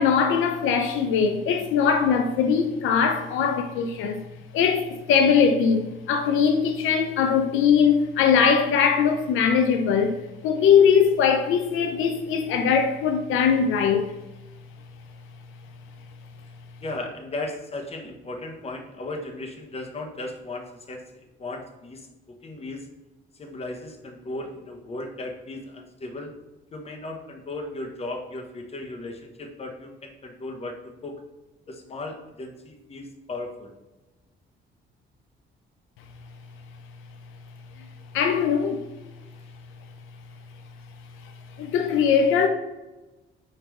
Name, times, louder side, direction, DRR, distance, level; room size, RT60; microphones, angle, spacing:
voice 1, 0.0-4.2 4.5-14.1 38.1-38.8 41.6-42.5, left 6 dB, 85° left, 0.5 m, -21 dB
voice 2, 16.8-22.9 23.3-26.3 26.7-30.8 31.0-31.2 31.7-33.7, left 2 dB, 30° left, 0.9 m, -36 dB
4.7 x 3.1 x 3.5 m
cardioid pair, 90°, 20 cm